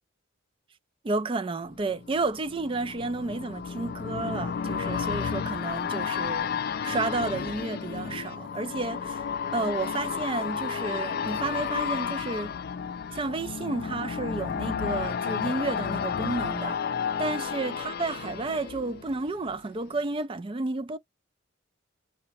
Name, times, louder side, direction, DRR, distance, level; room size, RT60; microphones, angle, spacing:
voice 1, 1.0-6.5 6.8-9.2 9.5-12.6 13.1-16.8 17.2-21.0, right 3 dB, 25° right, 0.4 m, -31 dB
sound 1, 1.7-19.5 19.9-20.0, left 6 dB, 50° left, 0.3 m, -32 dB
4.4 x 2.1 x 4.2 m
head